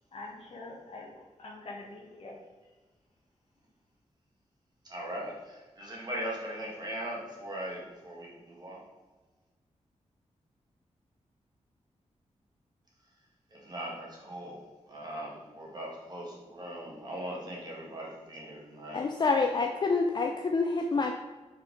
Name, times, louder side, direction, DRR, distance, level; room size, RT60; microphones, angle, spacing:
voice 1, 0.1-2.4, left 2 dB, 55° left, -1 dB, 1.3 m, -45 dB
voice 2, 4.8-8.8 13.5-14.6 14.9-19.1, right 1 dB, 35° right, -3 dB, 1.6 m, -40 dB
voice 3, 18.9-21.1, left 4 dB, 40° left, 3 dB, 0.4 m, -27 dB
5.6 x 4.5 x 3.9 m, 1.3 s
wide cardioid pair, 170°, 12 cm